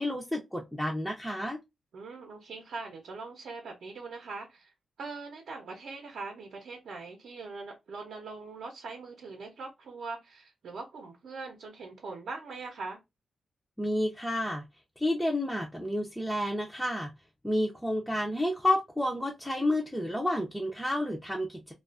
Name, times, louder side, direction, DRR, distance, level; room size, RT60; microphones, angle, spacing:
voice 1, 0.0-1.6 13.8-14.6 15.0-17.1 17.4-21.7, left 1 dB, 5° left, 0.4 m, -30 dB
voice 2, 1.9-4.7 5.0-13.0, right 4 dB, 70° right, 0.7 m, -42 dB
2.5 x 2.3 x 2.4 m
wide cardioid pair, 115°, 0 cm